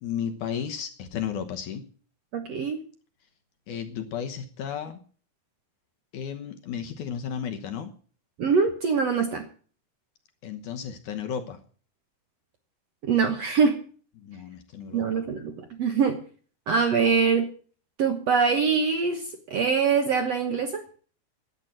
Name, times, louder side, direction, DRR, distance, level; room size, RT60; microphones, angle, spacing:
voice 1, 0.0-1.9 3.7-5.0 6.1-7.9 10.4-11.6 14.2-15.1, left 8 dB, 65° left, 5 dB, 2.2 m, -33 dB
voice 2, 2.3-2.8 8.4-9.5 13.0-13.8 14.9-16.2 16.7-17.5 18.0-19.2 19.5-20.8, right 5 dB, 60° right, 5 dB, 1.7 m, -23 dB
11.0 x 9.2 x 9.0 m, 0.44 s
omnidirectional pair, 4.4 m